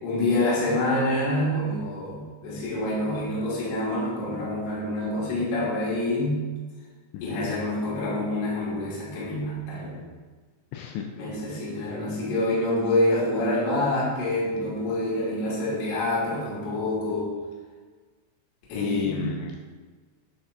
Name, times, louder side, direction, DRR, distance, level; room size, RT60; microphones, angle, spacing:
voice 1, 0.0-6.4 7.2-10.0 11.2-17.3 18.7-19.3, left 1 dB, 60° left, -6 dB, 3.6 m, -27 dB
voice 2, 7.1-7.6 10.7-11.1 18.7-19.6, left 8 dB, 85° left, 2 dB, 2.5 m, -32 dB
9.9 x 6.4 x 2.5 m, 1.4 s
omnidirectional pair, 5.5 m